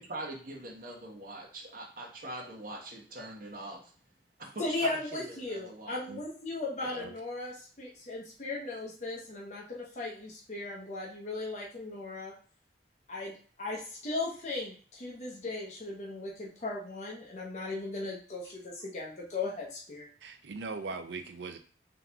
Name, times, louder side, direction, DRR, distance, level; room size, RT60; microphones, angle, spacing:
voice 1, 0.0-3.9 4.4-6.0, right 1 dB, 50° right, -1 dB, 1.1 m, -43 dB
voice 2, 4.6-12.3 13.1-20.1, left 2 dB, 40° left, -3 dB, 0.7 m, -37 dB
voice 3, 6.8-7.1 18.4-18.5 20.2-21.6, right 4 dB, 80° right, 7 dB, 0.5 m, -40 dB
3.7 x 2.9 x 3.4 m, 0.42 s
head